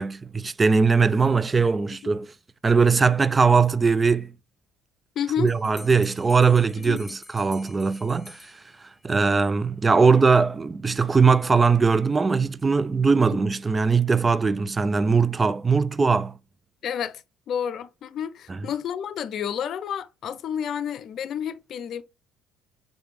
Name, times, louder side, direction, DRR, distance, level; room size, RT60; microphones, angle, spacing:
voice 1, 0.0-2.3 2.6-4.3 5.4-8.5 9.0-16.3 18.5-18.6, right 5 dB, 25° right, 0.3 m, -20 dB
voice 2, 5.2-5.5 6.8-7.0 13.3-13.4 16.8-17.2 17.5-22.0, left 8 dB, 55° left, 0.4 m, -30 dB
Bell, 5.5-9.1, left 2 dB, 15° left, 1.0 m, -47 dB
5.3 x 3.3 x 3.1 m
hypercardioid pair, 65°, 0 cm